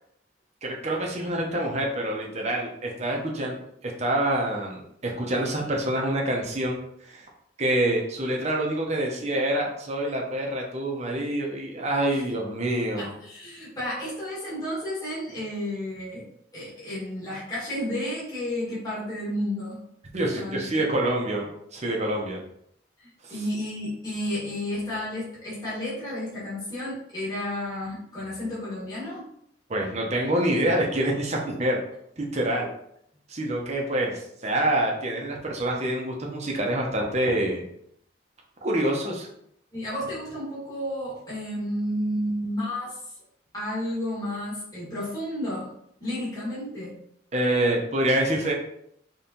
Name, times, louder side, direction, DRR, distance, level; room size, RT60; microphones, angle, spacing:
voice 1, 0.6-3.5 3.8-6.8 7.1-7.2 7.6-13.1 20.1-22.4 23.2-23.3 29.7-31.8 32.2-32.7 33.3-37.6 38.6-39.3 47.3-48.5, right 1 dB, 35° right, 0 dB, 0.9 m, -26 dB
voice 2, 13.0-16.2 16.5-19.8 20.3-20.6 23.0-29.2 39.7-43.0 43.5-45.7 46.0-47.0, left 1 dB, 20° left, -9 dB, 1.9 m, -32 dB
5.2 x 3.3 x 2.9 m, 0.73 s
head